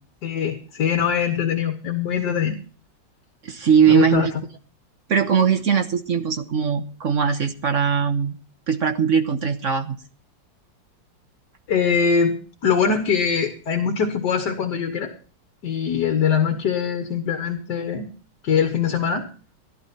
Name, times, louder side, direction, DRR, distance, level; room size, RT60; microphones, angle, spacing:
voice 1, 0.2-2.5 3.9-4.3 11.7-15.1 15.6-18.1 18.4-19.3, left 7 dB, 70° left, 6 dB, 1.9 m, -22 dB
voice 2, 3.4-4.3 5.1-8.3 8.7-10.0, right 7 dB, 50° right, 6 dB, 1.2 m, -20 dB
15.5 x 11.5 x 4.3 m, 0.39 s
omnidirectional pair, 2.0 m